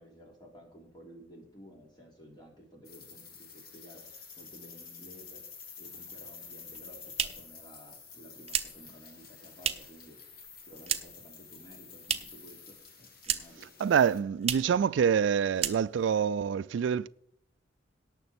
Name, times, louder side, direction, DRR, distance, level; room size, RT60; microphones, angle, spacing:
voice 1, 0.0-5.4 5.8-13.7, equal, 25° left, 3.0 m, -54 dB
sound 1, 2.8-14.2, left 5 dB, 50° left, 1.6 m, -49 dB
sound 2, 6.6-10.1 10.3-11.3 11.6-12.5 12.8-13.7 14.0-14.1 14.4-14.8 15.1-15.3 15.5-16.2, right 9 dB, 30° right, 0.8 m, -34 dB
voice 2, 13.8-17.1, right 7 dB, 70° right, 0.3 m, -26 dB
17.5 x 6.7 x 4.3 m
head